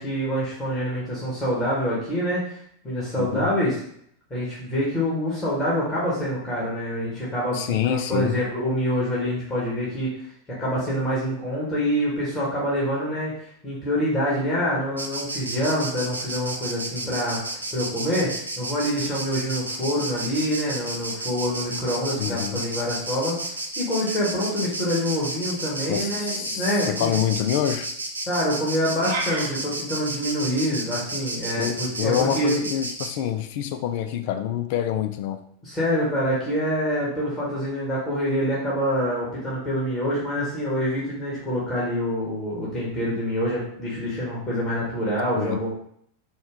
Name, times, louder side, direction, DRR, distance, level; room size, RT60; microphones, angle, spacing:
voice 1, 0.0-3.8 4.3-10.3 10.6-17.4 17.7-27.1 28.3-32.7 35.6-45.7, equal, 15° left, -7 dB, 1.4 m, -26 dB
voice 2, 3.2-3.5 7.5-8.3 22.2-22.6 25.9-27.9 31.6-35.4 45.4-45.6, left 10 dB, 50° left, 9 dB, 0.4 m, -26 dB
Insect, 15.0-33.1, right 2 dB, 80° right, 0.5 m, -32 dB
sound 1, 29.0-29.5, right 2 dB, 60° right, 1.0 m, -29 dB
4.4 x 2.3 x 3.4 m, 0.67 s
figure-of-eight pair, 90°, 0 cm